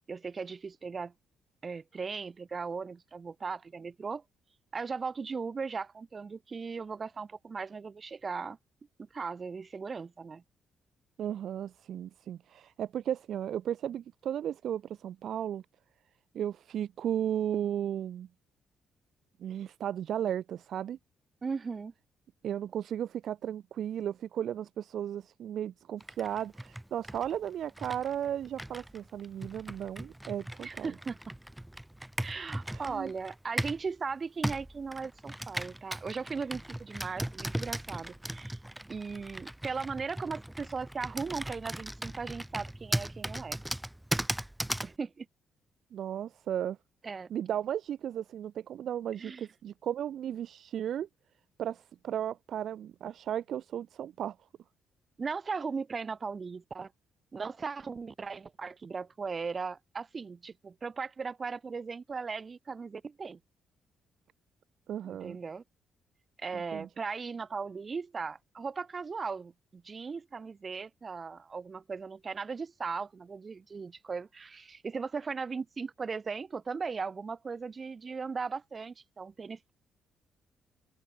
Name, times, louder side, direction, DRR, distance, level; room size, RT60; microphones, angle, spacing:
voice 1, 0.1-1.1 1.6-4.2 4.7-8.6 9.0-10.4 21.4-21.9 30.6-31.4 32.2-38.6 38.9-43.6 44.8-45.3 47.0-47.3 49.2-49.5 55.2-56.9 57.3-63.4 65.0-65.6 66.4-79.7, right 5 dB, 35° right, 1.8 m, -38 dB
voice 2, 11.2-15.6 16.3-18.3 19.4-21.0 22.4-30.9 32.7-33.1 45.9-46.8 47.3-51.1 51.6-54.4 64.9-65.4 66.5-66.9, right 10 dB, 65° right, 0.6 m, -35 dB
Computer keyboard, 26.0-33.9 34.4-45.0, right 1 dB, 5° right, 3.8 m, -38 dB
open air
cardioid pair, 90°, 0 cm